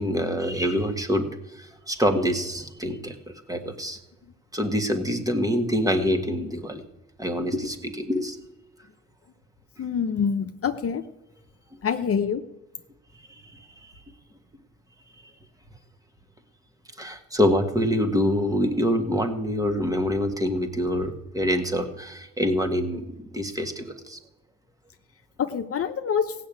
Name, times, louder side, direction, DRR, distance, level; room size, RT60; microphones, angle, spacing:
voice 1, 0.0-4.0 4.5-6.8 7.2-8.4 13.5-13.6 17.0-23.0 23.3-24.2, equal, 10° right, 5 dB, 1.7 m, -25 dB
voice 2, 9.8-11.0 11.8-12.4 25.4-26.3, left 7 dB, 50° left, 7 dB, 0.9 m, -26 dB
16.0 x 6.7 x 8.8 m, 0.99 s
cardioid pair, 90°, 30 cm